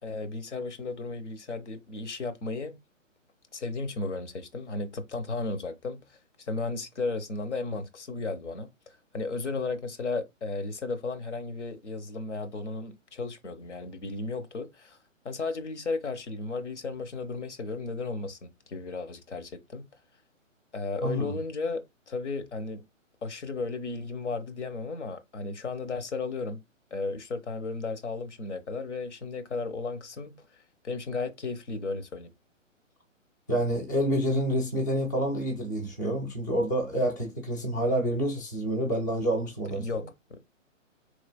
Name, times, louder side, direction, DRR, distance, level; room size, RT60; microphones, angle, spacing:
voice 1, 0.0-2.8 3.5-15.0 15.2-19.9 20.7-22.8 23.2-26.6 26.9-30.4 30.8-32.3 39.7-40.4, left 3 dB, 60° left, 0.9 m, -34 dB
voice 2, 21.0-21.4 33.5-39.9, equal, 15° left, 0.4 m, -28 dB
4.1 x 3.2 x 2.2 m
figure-of-eight pair, 130°, 39 cm